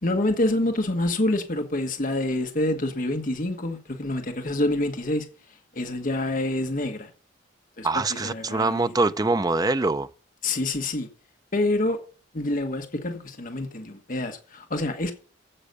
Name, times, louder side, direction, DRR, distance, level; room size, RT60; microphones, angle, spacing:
voice 1, 0.0-5.3 5.7-7.1 7.8-8.9 10.4-11.1 11.5-12.0 12.3-15.1, left 1 dB, 40° left, 1.4 m, -27 dB
voice 2, 7.8-10.1, right 3 dB, 20° right, 0.5 m, -24 dB
9.9 x 8.1 x 6.7 m
head